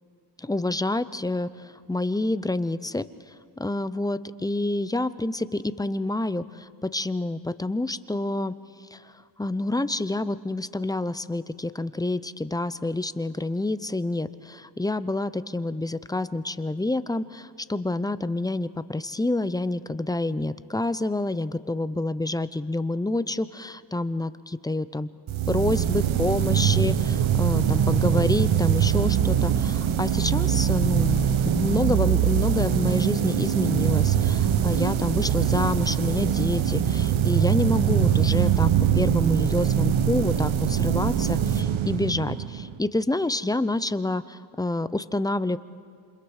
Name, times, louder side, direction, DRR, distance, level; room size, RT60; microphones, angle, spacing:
voice 1, 0.4-3.1 3.6-8.5 8.9-9.0 9.4-25.1 25.5-31.3 31.5-38.7 38.9-45.6, left 2 dB, 10° left, 14 dB, 0.5 m, -28 dB
sound 1, 25.3-42.8, right 9 dB, 85° right, 1.0 m, -23 dB
28.0 x 26.5 x 4.9 m, 2.2 s
wide cardioid pair, 100°, 46 cm